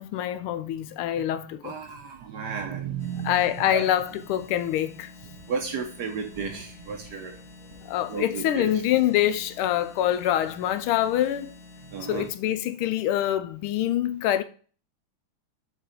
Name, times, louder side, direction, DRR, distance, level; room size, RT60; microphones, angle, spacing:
voice 1, 0.0-1.8 3.2-5.1 7.8-11.5 12.0-14.4, left 12 dB, 85° left, 1.5 m, -25 dB
voice 2, 1.6-3.9 5.4-7.4 7.7-7.8 8.1-8.7 11.9-12.3, right 6 dB, 65° right, 1.1 m, -33 dB
sound 1, 3.0-12.3, left 2 dB, 65° left, 2.0 m, -48 dB
6.5 x 3.5 x 4.3 m
omnidirectional pair, 2.3 m